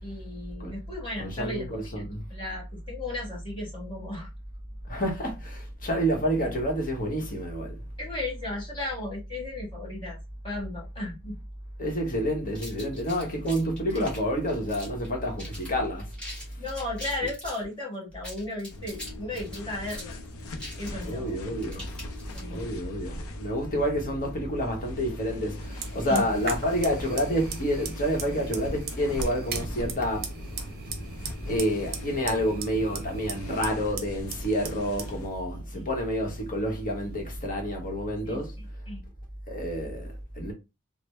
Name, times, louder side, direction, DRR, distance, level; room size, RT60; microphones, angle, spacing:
voice 1, 0.0-1.7 2.0-4.3 8.0-10.2 10.4-11.3 13.9-14.0 16.6-20.2 20.8-21.4 22.3-22.7 26.0-26.2 35.8-35.9 38.3-38.4 38.9-39.0, left 2 dB, 25° left, 1.9 m, -35 dB
voice 2, 1.2-2.2 4.9-7.8 11.8-16.1 21.0-21.9 22.5-30.3 31.5-38.6 39.5-40.5, equal, 40° left, 1.0 m, -29 dB
sound 1, 12.5-15.1 15.4-15.7 16.0-17.6 18.1-22.7, left 1 dB, 5° left, 1.5 m, -43 dB
sound 2, 18.7-35.3, left 2 dB, 65° left, 0.6 m, -41 dB
Fire, 25.6-37.4, right 5 dB, 45° right, 0.7 m, -40 dB
3.3 x 2.1 x 3.1 m
head